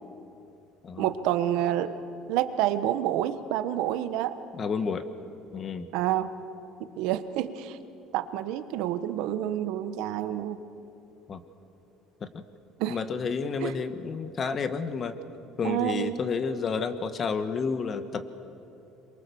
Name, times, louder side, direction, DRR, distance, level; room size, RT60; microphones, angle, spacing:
voice 1, 1.0-1.9 2.3-4.4 5.9-6.3 6.8-7.8 8.1-10.6 12.8-13.0 13.6-13.7 15.6-16.2, right 12 dB, 80° right, 11 dB, 1.3 m, -28 dB
voice 2, 4.6-5.0 5.5-5.9 11.3-11.4 12.2-12.4 12.9-15.2 15.6-18.2, left 5 dB, 35° left, 10 dB, 1.4 m, -30 dB
26.5 x 23.0 x 7.1 m, 2.7 s
cardioid pair, 130°, 0 cm